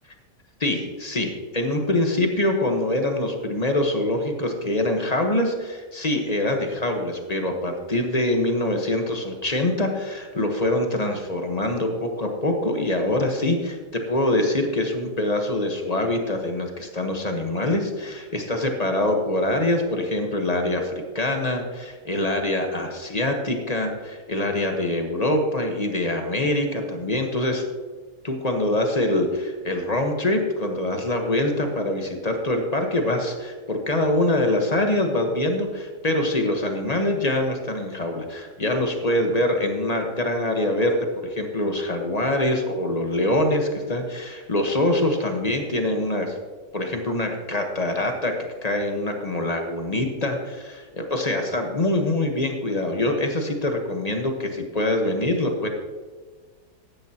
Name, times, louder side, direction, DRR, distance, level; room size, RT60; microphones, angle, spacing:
voice 1, 0.6-27.6 28.2-46.3 46.7-48.3 48.6-55.7, left 1 dB, 25° left, 3 dB, 1.2 m, -24 dB
15.0 x 10.5 x 2.9 m, 1.4 s
omnidirectional pair, 1.7 m